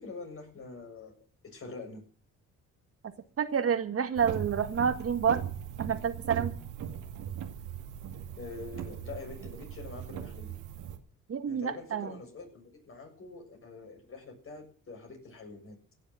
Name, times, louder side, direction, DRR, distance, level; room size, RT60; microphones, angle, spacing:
voice 1, 0.0-2.0 8.4-10.6 11.4-15.9, left 3 dB, 45° left, 3 dB, 6.9 m, -45 dB
voice 2, 3.4-5.4 5.8-6.5 11.3-12.1, right 7 dB, 50° right, 8 dB, 1.8 m, -28 dB
sound 1, 4.1-11.0, right 9 dB, 90° right, 2.2 m, -39 dB
16.5 x 7.3 x 9.1 m, 0.43 s
cardioid pair, 90°, 30 cm